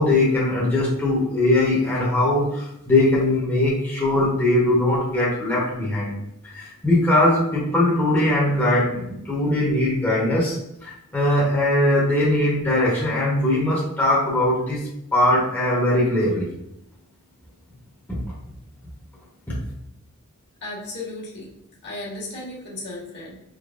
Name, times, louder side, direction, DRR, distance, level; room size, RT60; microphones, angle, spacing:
voice 1, 0.0-6.1 6.4-16.5 18.1-18.2 19.5-19.6, left 1 dB, 10° left, -7 dB, 0.9 m, -21 dB
voice 2, 20.6-21.5 21.8-23.4, left 2 dB, 55° left, -5 dB, 1.4 m, -35 dB
4.9 x 2.9 x 2.5 m, 0.80 s
head